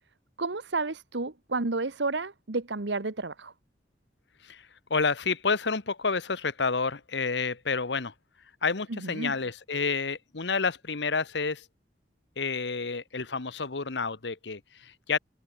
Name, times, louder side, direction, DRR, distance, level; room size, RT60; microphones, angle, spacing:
voice 1, 0.4-3.5 8.9-9.3, right 3 dB, 85° right, 1.3 m, -31 dB
voice 2, 4.4-8.1 8.6-11.6 12.4-15.2, left 4 dB, 80° left, 1.2 m, -29 dB
open air
head